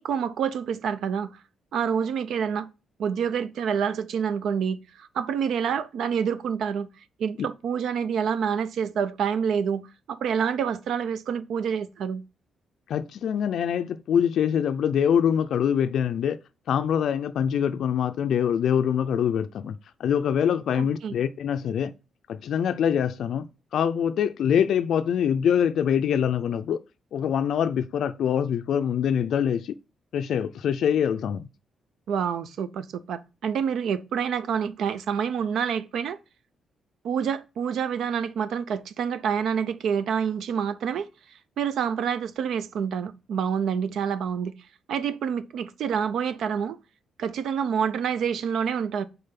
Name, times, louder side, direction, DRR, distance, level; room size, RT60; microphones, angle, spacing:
voice 1, 0.0-1.4 1.7-2.7 3.0-6.9 7.2-12.2 20.7-21.2 32.1-36.2 37.0-41.1 41.6-44.5 44.9-46.8 47.2-49.0, right 7 dB, 70° right, 0.5 m, -27 dB
voice 2, 12.9-16.4 16.7-21.9 22.3-23.5 23.7-26.8 27.1-29.8 30.1-31.5, left 8 dB, 65° left, 0.4 m, -24 dB
5.4 x 3.9 x 5.7 m
wide cardioid pair, 165°, 0 cm